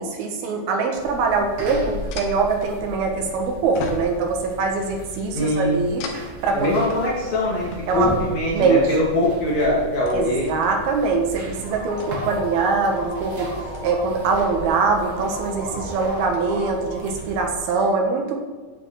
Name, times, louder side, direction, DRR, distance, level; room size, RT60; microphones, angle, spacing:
voice 1, 0.0-6.0 6.4-6.9 7.9-8.1 8.5-8.8 10.1-13.5 13.8-18.4, right 4 dB, 85° right, 3 dB, 3.3 m, -23 dB
sound 1, 1.0-17.6, right 1 dB, 45° right, 1.9 m, -37 dB
sound 2, 2.1-3.3 3.8-4.6 6.0-10.7 11.3-11.5 11.9-12.6 13.2-15.0 15.3-15.6 16.1-16.6, left 2 dB, 80° left, 3.1 m, -38 dB
voice 2, 5.3-5.8 6.5-10.5, left 1 dB, 50° left, -5 dB, 3.7 m, -22 dB
sound 3, 11.5-17.2, equal, 15° left, 1.3 m, -35 dB
9.7 x 9.0 x 4.7 m, 1.4 s
omnidirectional pair, 4.3 m